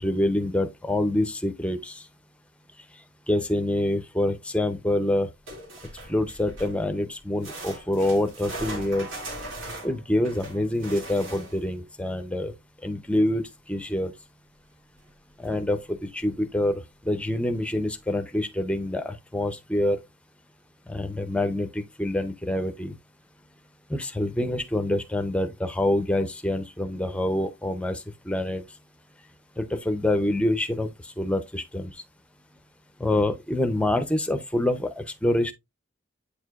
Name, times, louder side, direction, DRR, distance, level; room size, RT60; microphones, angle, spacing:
voice 1, 0.0-2.1 3.3-5.3 6.1-9.1 9.8-12.5 12.8-14.1 15.4-20.0 20.9-22.9 23.9-28.6 29.6-32.0 33.0-35.5, left 1 dB, 5° left, 0.6 m, -26 dB
sound 1, 5.5-6.9 7.4-11.7 15.0-15.1 15.4-15.5 16.3-16.4, right 1 dB, 80° right, 2.4 m, -39 dB
8.5 x 4.7 x 2.4 m
head